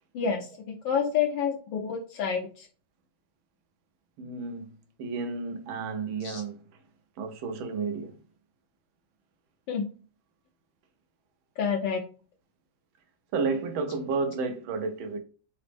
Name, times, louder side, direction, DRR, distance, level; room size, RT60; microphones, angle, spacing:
voice 1, 0.1-0.5 0.8-2.7 6.2-6.4 9.7-9.9 11.6-12.0, left 7 dB, 75° left, 1.3 m, -28 dB
voice 2, 4.2-4.7 5.0-6.6 7.2-8.2 13.3-15.2, right 4 dB, 80° right, 1.4 m, -31 dB
4.0 x 2.0 x 3.3 m
omnidirectional pair, 2.2 m